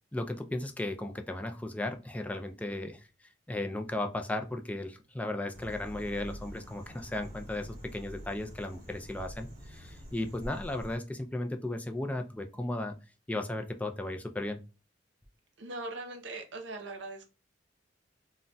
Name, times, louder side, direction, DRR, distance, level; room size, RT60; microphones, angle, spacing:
voice 1, 0.1-3.1 3.5-13.0 13.3-14.6, left 1 dB, 10° left, 5 dB, 0.3 m, -35 dB
sound 1, 5.5-11.0, equal, 40° right, 1.1 m, -46 dB
voice 2, 15.6-17.3, right 2 dB, 75° right, 4 dB, 0.8 m, -40 dB
3.8 x 2.1 x 2.2 m, 0.31 s
head